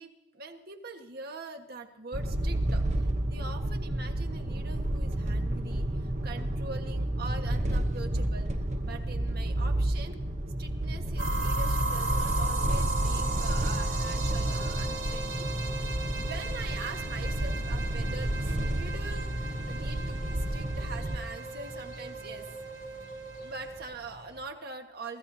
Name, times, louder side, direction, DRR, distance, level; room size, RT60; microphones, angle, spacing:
voice 1, 0.0-10.2 10.6-15.5 15.8-15.9 16.2-22.5 23.3-25.2, right 3 dB, 55° right, 4 dB, 1.6 m, -43 dB
sound 1, 2.1-21.2, right 1 dB, 40° right, 1.0 m, -30 dB
sound 2, 11.2-23.8, right 3 dB, 85° right, 2.3 m, -37 dB
sound 3, 11.6-24.5, left 1 dB, 45° left, 1.5 m, -45 dB
24.5 x 15.0 x 2.8 m, 0.95 s
head